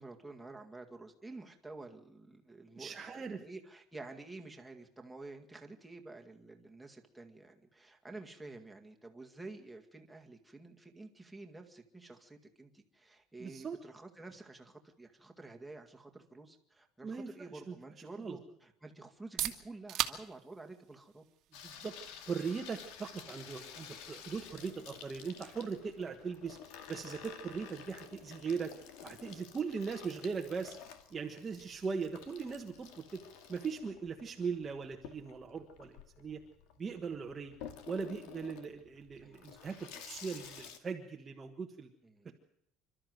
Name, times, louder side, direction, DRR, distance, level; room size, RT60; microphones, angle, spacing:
voice 1, 0.0-21.2 39.2-39.7 42.0-42.3, right 2 dB, 5° right, 2 dB, 2.1 m, -50 dB
voice 2, 2.7-3.4 13.4-13.8 17.0-17.3 17.7-17.8 18.2-18.4 21.6-26.6 26.9-28.7 29.0-30.8 31.1-33.2 33.5-36.4 36.8-37.5 37.9-41.9 42.2-42.3, right 5 dB, 20° right, 2 dB, 1.4 m, -39 dB
sound 1, 19.1-34.7, right 14 dB, 50° right, 1.7 m, -47 dB
Water tap faucet / Sink (filling or washing), 21.5-40.8, left 8 dB, 75° left, 2.3 m, -52 dB
27.5 x 13.0 x 7.9 m, 0.75 s
cardioid pair, 160°, 0 cm